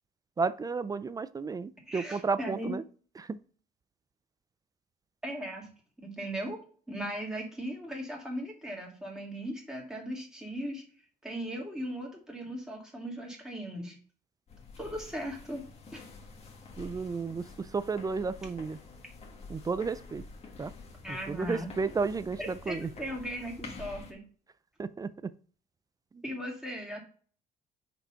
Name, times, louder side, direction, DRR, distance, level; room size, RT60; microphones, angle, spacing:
voice 1, 0.4-2.8 3.2-3.4 16.8-18.8 19.5-20.2 20.6-20.7 21.1-22.9 24.8-25.3 26.1-26.2, right 4 dB, 20° right, 15 dB, 0.4 m, -33 dB
voice 2, 1.9-2.7 5.2-5.7 6.0-6.6 6.9-10.8 11.2-14.0 14.8-15.6 15.9-16.0 21.0-21.7 22.4-24.2 26.2-27.0, equal, 5° right, -1 dB, 2.5 m, -38 dB
sound 1, 14.5-24.1, left 4 dB, 40° left, 1.7 m, -48 dB
5.3 x 4.4 x 5.6 m, 0.43 s
cardioid pair, 110°, 17 cm